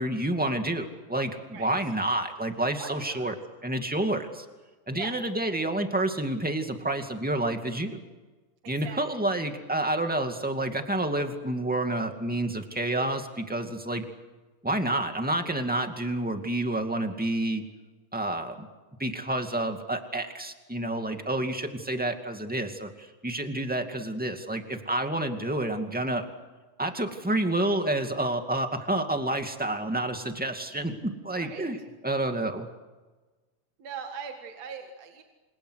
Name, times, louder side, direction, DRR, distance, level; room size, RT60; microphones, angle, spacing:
voice 1, 0.0-3.3 3.6-4.5 4.9-8.0 8.7-14.1 14.6-17.6 18.1-18.7 19.0-26.3 26.8-31.8 32.0-32.7, right 1 dB, 5° right, 5 dB, 1.7 m, -29 dB
voice 2, 2.8-3.3 4.9-5.2 8.8-9.0 31.3-31.7 33.8-35.2, right 6 dB, 60° right, 4 dB, 3.0 m, -40 dB
29.0 x 27.5 x 6.5 m, 1.3 s
omnidirectional pair, 3.6 m